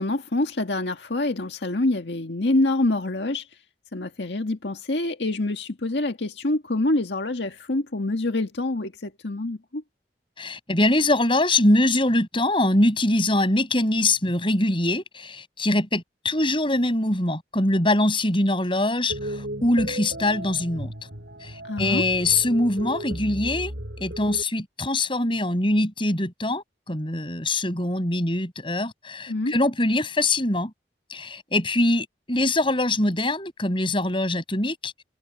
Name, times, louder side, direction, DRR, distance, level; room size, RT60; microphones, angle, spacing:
voice 1, 0.0-3.4 3.9-9.8 21.6-22.1 29.3-29.5, left 2 dB, 85° left, 1.8 m, -26 dB
voice 2, 10.4-20.9 21.4-30.7 31.1-34.9, left 1 dB, 30° left, 6.4 m, -23 dB
sound 1, 19.1-24.4, right 1 dB, 70° right, 6.3 m, -35 dB
head